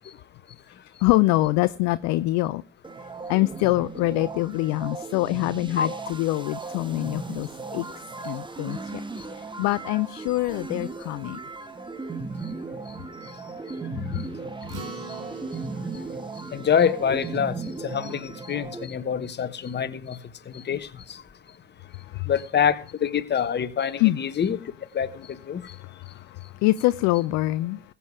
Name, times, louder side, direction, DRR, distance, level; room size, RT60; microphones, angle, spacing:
voice 1, 0.7-2.6 3.3-7.9 8.2-9.0 9.3-11.4 22.0-22.3 24.0-24.2 25.6-27.8, left 18 dB, 45° left, 0.6 m, -25 dB
sound 1, 2.8-18.8, right 4 dB, 10° right, 1.3 m, -36 dB
Acoustic guitar, 14.7-19.4, right 4 dB, 50° right, 3.7 m, -44 dB
voice 2, 16.5-20.2 20.5-21.2 22.2-24.6 24.9-25.7, left 7 dB, 30° left, 1.2 m, -26 dB
21.5 x 8.6 x 3.5 m
figure-of-eight pair, 60°, 38 cm